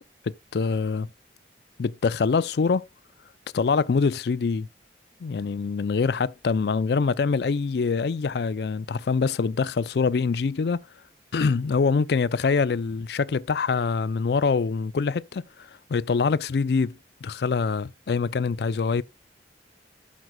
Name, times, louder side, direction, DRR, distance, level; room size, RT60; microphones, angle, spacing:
voice 1, 0.2-1.1 1.8-2.8 3.5-4.7 5.2-10.8 11.3-17.0 17.2-19.0, left 5 dB, 65° left, 0.4 m, -24 dB
12.0 x 6.2 x 2.2 m
head